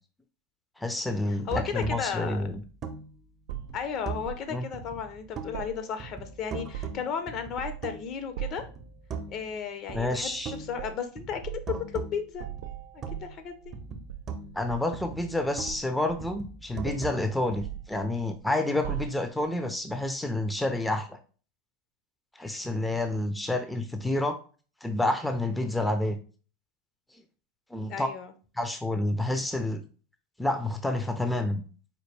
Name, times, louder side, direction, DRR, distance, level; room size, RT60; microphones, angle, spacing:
voice 1, 0.8-2.6 4.5-4.6 9.9-10.5 14.5-21.2 22.4-24.4 24.8-26.2 27.7-28.1 28.6-29.8 30.4-31.6, left 1 dB, 5° left, 7 dB, 0.5 m, -29 dB
voice 2, 1.3-2.4 3.7-8.6 9.3-12.5 12.9-13.7 27.9-28.3, left 7 dB, 45° left, 8 dB, 0.7 m, -34 dB
sound 1, 1.5-4.4 4.7-5.7 6.0-8.2 8.6-9.6 9.9-13.5 13.7-15.9 16.2-18.0, right 5 dB, 35° right, 0.7 m, -40 dB
sound 2, 3.5-4.5 5.5-6.3 6.6-7.1 7.6-7.9 8.4-8.8 9.9-10.2 10.7-11.0 11.4-11.7 12.3-13.8 14.1-15.0 15.7-16.5 16.8-17.2 17.6-18.4 18.8-19.4 20.4-20.6, right 12 dB, 75° right, 0.3 m, -39 dB
4.3 x 2.2 x 3.3 m, 0.38 s
hypercardioid pair, 95°, 0 cm